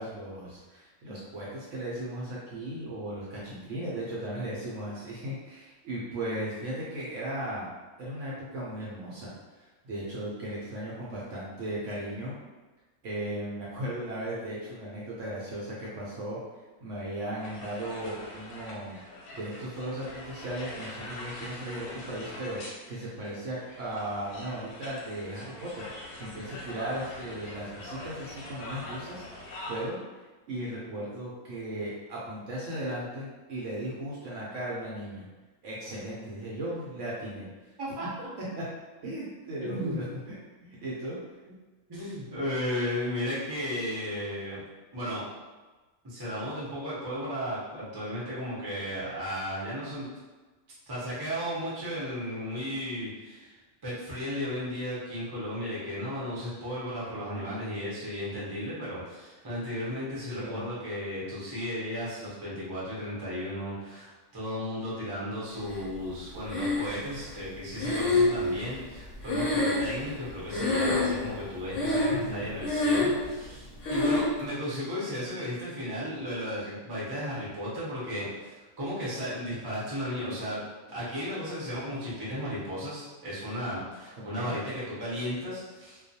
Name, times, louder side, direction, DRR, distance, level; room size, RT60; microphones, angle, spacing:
voice 1, 0.0-7.7 8.0-12.4 13.0-16.4 16.8-19.0 19.3-35.3 35.6-37.5 39.0-40.4 40.6-41.2 57.1-57.9 60.3-60.6 72.1-72.5 81.7-81.8 84.3-84.6, right 1 dB, 70° right, -6 dB, 0.8 m, -37 dB
sound 1, 17.4-29.9, left 1 dB, 90° left, 1.1 m, -43 dB
voice 2, 39.6-40.1 41.9-44.6 44.9-45.2 46.0-50.1 50.9-53.6 53.8-80.6 80.9-86.0, equal, 25° right, -9 dB, 0.5 m, -34 dB
Breathing, 66.5-67.2 67.8-70.3 70.5-71.3 71.7-72.3 72.6-73.2 73.8-74.3, left 2 dB, 65° left, 0.9 m, -26 dB
2.3 x 2.2 x 2.6 m, 1.2 s
omnidirectional pair, 1.5 m